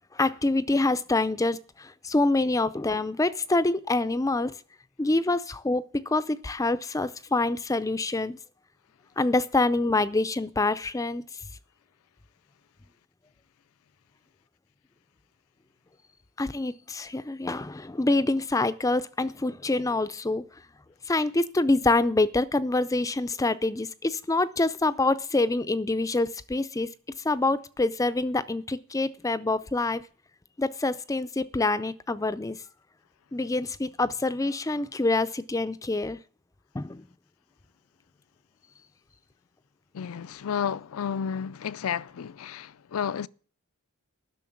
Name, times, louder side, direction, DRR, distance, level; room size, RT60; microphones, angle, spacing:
voice 1, 0.1-4.5 5.0-8.4 9.2-11.2 16.4-20.4 21.1-26.9 27.2-30.0 30.6-32.6 33.3-36.2 36.7-37.1, left 2 dB, 15° left, 0.4 m, -26 dB
voice 2, 39.9-43.3, left 7 dB, 70° left, 0.4 m, -31 dB
11.0 x 6.5 x 8.5 m
head